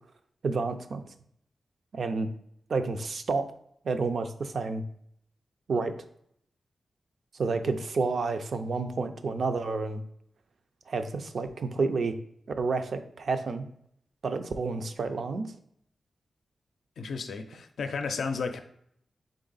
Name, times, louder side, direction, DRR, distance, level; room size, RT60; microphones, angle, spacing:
voice 1, 0.4-1.0 1.9-2.3 2.7-3.5 3.8-4.8 5.7-5.9 7.3-10.0 10.9-12.2 12.6-13.6 14.2-15.5, right 4 dB, 65° right, 8 dB, 0.4 m, -30 dB
voice 2, 17.0-18.6, left 5 dB, 80° left, 7 dB, 0.4 m, -33 dB
3.7 x 3.5 x 4.0 m, 0.70 s
cardioid pair, 80°, 0 cm